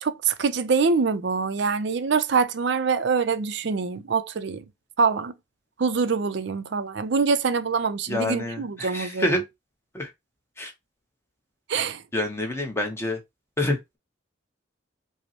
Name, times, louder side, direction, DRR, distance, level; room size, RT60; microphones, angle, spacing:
voice 1, 0.0-4.6 5.0-5.3 5.8-9.4 11.7-12.0, right 5 dB, 60° right, 0.5 m, -24 dB
voice 2, 8.1-9.4 9.9-10.1 10.6-10.7 12.1-13.2 13.6-13.8, left 1 dB, 10° left, 0.8 m, -27 dB
5.1 x 2.1 x 2.8 m
head